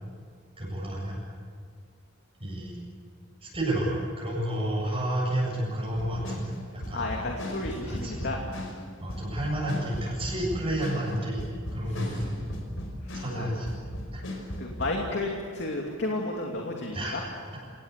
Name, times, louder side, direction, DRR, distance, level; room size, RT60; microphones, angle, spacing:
voice 1, 0.6-1.2 2.4-2.8 3.4-7.1 7.8-8.4 9.0-11.4 11.7-12.4 13.1-13.7 14.1-14.2 16.9-17.2, right 1 dB, 30° right, -4 dB, 7.5 m, -30 dB
sound 1, 6.0-8.8 9.1-13.4 13.7-14.9, equal, 85° left, 5.4 m, -37 dB
voice 2, 6.9-8.4 11.9-12.1 13.0-13.5 14.6-17.2, left 2 dB, 60° left, 0 dB, 2.7 m, -32 dB
28.0 x 19.0 x 8.3 m, 2.1 s
head